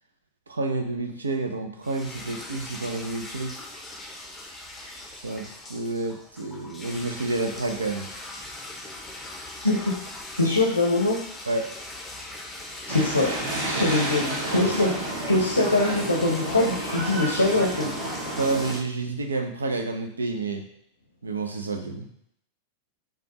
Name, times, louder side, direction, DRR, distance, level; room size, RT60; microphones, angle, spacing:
voice 1, 0.5-3.5 5.2-8.1 11.5-11.7 14.5-14.7 17.8-18.0 18.4-20.6 21.2-22.1, right 3 dB, 75° right, 5 dB, 0.5 m, -29 dB
sound 1, 1.8-18.8, left 2 dB, 10° left, 0.6 m, -40 dB
voice 2, 10.4-11.2 12.9-13.3 13.8-14.9 15.3-17.9, left 2 dB, 85° left, -2 dB, 0.6 m, -22 dB
sound 2, 12.9-18.7, right 1 dB, 50° right, 1.3 m, -31 dB
5.0 x 2.3 x 2.9 m, 0.70 s
figure-of-eight pair, 90°, 0 cm